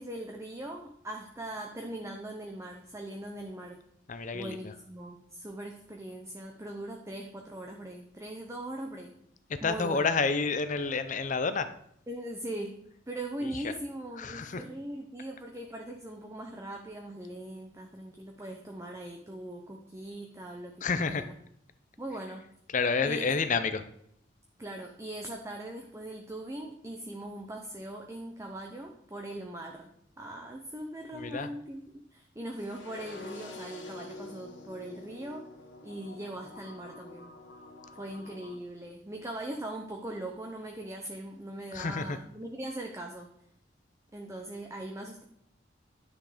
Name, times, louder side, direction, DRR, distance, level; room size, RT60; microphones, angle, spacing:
voice 1, 0.0-3.8 4.3-9.1 9.6-10.1 12.1-12.8 13.1-21.4 22.0-22.5 23.0-23.4 24.6-29.9 30.2-35.5 35.8-37.3 38.0-43.3 44.1-45.2, right 1 dB, 15° right, 2 dB, 0.8 m, -40 dB
voice 2, 4.1-4.6 9.6-11.7 14.2-14.6 20.8-21.2 22.7-23.8 31.1-31.5 41.7-42.2, left 4 dB, 40° left, 11 dB, 0.6 m, -29 dB
sound 1, 32.6-38.6, left 3 dB, 80° left, 1.9 m, -47 dB
10.5 x 6.2 x 5.0 m, 0.71 s
head